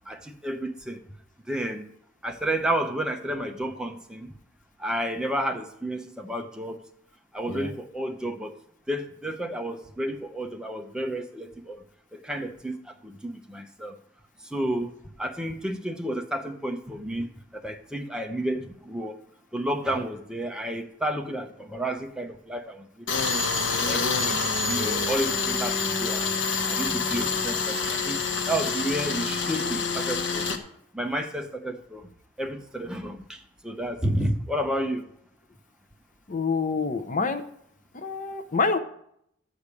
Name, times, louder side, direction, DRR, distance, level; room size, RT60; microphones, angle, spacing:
voice 1, 0.1-1.0 1.5-1.9 2.2-4.3 4.8-6.8 7.3-8.5 8.9-11.8 12.1-14.0 14.5-14.9 15.2-19.2 19.5-23.1 23.7-26.3 26.7-30.5 30.9-32.1 32.4-35.0, right 1 dB, 5° right, 4 dB, 0.8 m, -31 dB
Tools, 23.1-30.6, left 4 dB, 60° left, 1.2 m, -27 dB
voice 2, 36.3-37.4 37.9-38.8, left 4 dB, 40° left, 9 dB, 0.7 m, -27 dB
13.0 x 5.0 x 8.4 m, 0.72 s
head